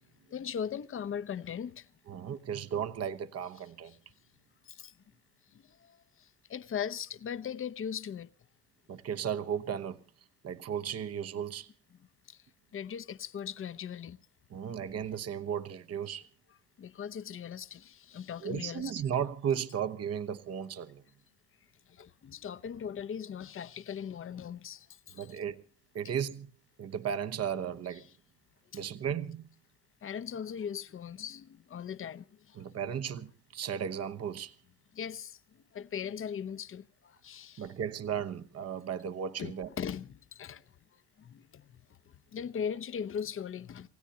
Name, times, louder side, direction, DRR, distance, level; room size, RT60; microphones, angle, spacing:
voice 1, 0.3-1.9 4.7-4.9 5.8-8.3 12.3-12.4 12.7-14.2 16.8-18.9 21.9-25.3 28.7-28.8 30.0-32.6 34.9-35.4 35.7-37.7 39.4-40.6 41.2-41.6 42.3-43.9, left 8 dB, 35° left, 0.9 m, -39 dB
voice 2, 2.1-4.0 8.9-10.0 10.4-11.7 14.5-16.3 18.4-21.0 25.1-25.6 25.9-26.5 26.8-28.1 28.7-29.5 32.6-34.5 37.6-39.7, right 8 dB, 40° right, 1.1 m, -35 dB
27.5 x 16.0 x 2.8 m
hypercardioid pair, 70°, 37 cm